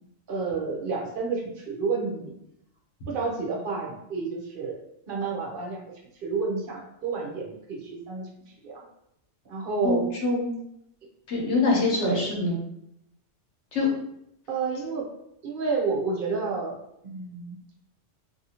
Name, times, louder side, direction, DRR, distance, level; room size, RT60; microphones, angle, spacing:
voice 1, 0.3-2.3 3.1-4.8 5.1-5.8 6.2-8.3 8.6-8.8 9.5-10.0 12.0-12.3 14.5-15.1 15.4-16.8 17.0-17.6, right 4 dB, 55° right, -1 dB, 0.8 m, -30 dB
voice 2, 9.8-10.5 11.3-12.6 13.7-13.9, left 3 dB, 70° left, -2 dB, 1.2 m, -24 dB
2.7 x 2.6 x 2.8 m, 0.77 s
omnidirectional pair, 1.2 m